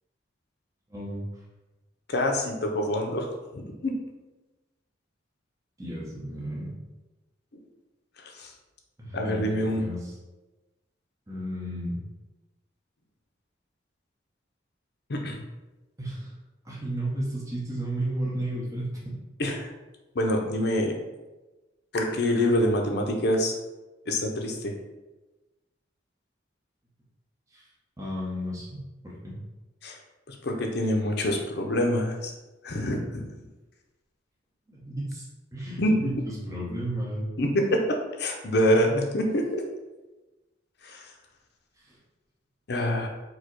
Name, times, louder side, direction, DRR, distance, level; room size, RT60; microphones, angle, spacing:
voice 1, 0.9-1.2 5.8-6.7 9.0-9.5 9.8-10.2 11.3-12.0 16.0-16.3 16.6-19.2 27.5-27.7 28.0-29.3 34.7-35.2 35.5-37.3 41.8-42.0, right 1 dB, 15° right, -6 dB, 0.8 m, -33 dB
voice 2, 2.1-4.0 8.2-8.5 9.1-9.8 15.1-15.4 19.4-19.7 20.1-21.0 21.9-23.6 24.1-24.7 29.8-30.0 30.3-32.3 32.6-33.3 35.8-36.1 37.4-39.6 40.8-41.1 42.7-43.1, left 1 dB, 55° left, 2 dB, 0.6 m, -26 dB
4.6 x 2.2 x 4.5 m, 1.1 s
head